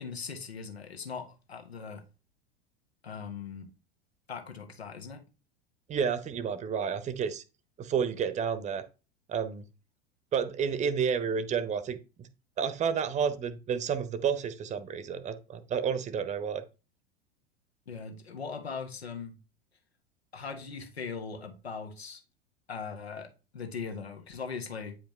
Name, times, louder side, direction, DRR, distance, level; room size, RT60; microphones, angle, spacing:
voice 1, 0.0-2.0 3.0-3.7 4.3-5.2 17.9-19.3 20.3-22.2 22.7-25.0, left 5 dB, 75° left, 1.6 m, -40 dB
voice 2, 5.9-7.4 7.8-8.8 9.3-9.6 10.3-12.3 12.6-16.6, right 7 dB, 20° right, 0.9 m, -30 dB
9.1 x 5.0 x 3.2 m
figure-of-eight pair, 85°, 32 cm